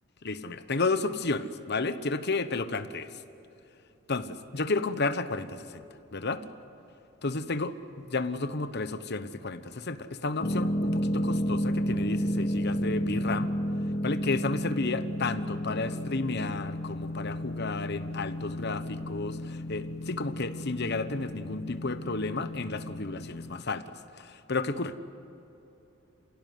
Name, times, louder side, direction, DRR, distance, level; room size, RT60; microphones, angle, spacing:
voice 1, 0.2-3.2 4.1-5.8 6.1-6.4 7.2-13.5 14.0-25.0, left 3 dB, 55° left, 11 dB, 1.1 m, -32 dB
sound 1, 10.4-23.6, equal, 35° left, 0.7 m, -32 dB
27.5 x 17.0 x 9.5 m, 2.9 s
head